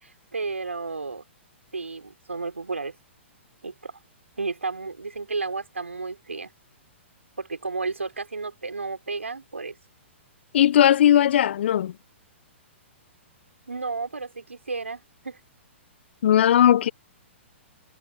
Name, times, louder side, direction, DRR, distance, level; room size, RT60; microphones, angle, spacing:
voice 1, 0.0-1.2 1.7-3.0 3.6-4.0 4.4-6.5 7.4-9.8 13.7-15.4, right 4 dB, 85° right, 4.2 m, -32 dB
voice 2, 10.5-11.9 16.2-16.9, left 10 dB, 60° left, 0.7 m, -18 dB
figure-of-eight pair, 120°, 7 cm